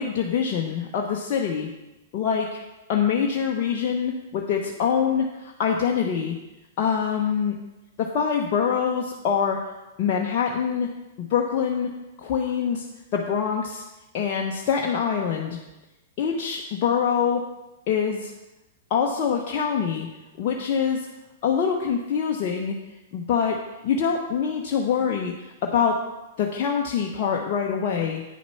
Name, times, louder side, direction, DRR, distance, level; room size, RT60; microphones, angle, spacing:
voice 1, 0.0-1.7 2.1-2.6 2.9-6.3 6.8-7.5 8.0-9.6 10.0-10.9 11.2-11.9 12.2-12.8 13.1-13.8 14.1-15.6 16.2-17.4 17.9-18.3 18.9-20.1 20.4-21.0 21.4-22.7 23.1-26.0 26.4-28.2, left 7 dB, 40° left, -1 dB, 0.9 m, -24 dB
9.4 x 7.1 x 4.5 m, 0.99 s
figure-of-eight pair, 105°, 0 cm